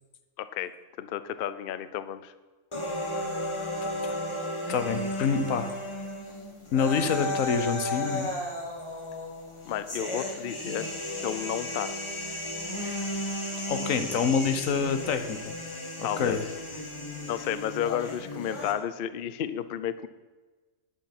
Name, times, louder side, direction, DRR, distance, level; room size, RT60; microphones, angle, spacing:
voice 1, 0.4-2.3 9.7-10.9 11.2-12.0 16.0-16.4 17.3-20.1, left 10 dB, 60° left, 13 dB, 0.6 m, -32 dB
sound 1, 2.7-18.7, left 1 dB, 25° left, 1.3 m, -34 dB
voice 2, 3.8-4.2 4.7-5.7 6.7-8.3 13.7-15.5 16.0-16.4 17.8-18.0, left 6 dB, 85° left, 9 dB, 1.3 m, -27 dB
10.0 x 8.0 x 5.8 m, 1.3 s
omnidirectional pair, 1.3 m